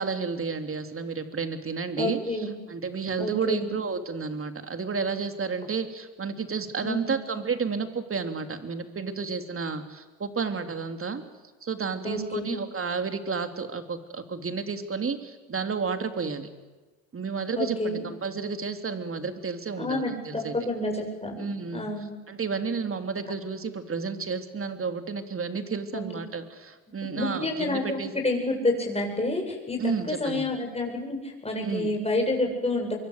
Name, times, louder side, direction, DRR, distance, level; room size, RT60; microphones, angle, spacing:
voice 1, 0.0-11.2 11.6-16.5 17.1-20.5 21.4-21.8 22.3-28.2 29.8-30.4 31.6-31.9, right 5 dB, 30° right, 8 dB, 3.2 m, -31 dB
voice 2, 2.0-2.5 3.2-3.7 6.8-7.1 12.0-12.6 17.6-18.0 19.8-21.4 21.7-22.1 25.9-26.0 27.2-28.0 28.2-33.0, left 2 dB, 15° left, 1 dB, 8.0 m, -29 dB
25.5 x 23.0 x 8.2 m, 1.3 s
hypercardioid pair, 70°, 43 cm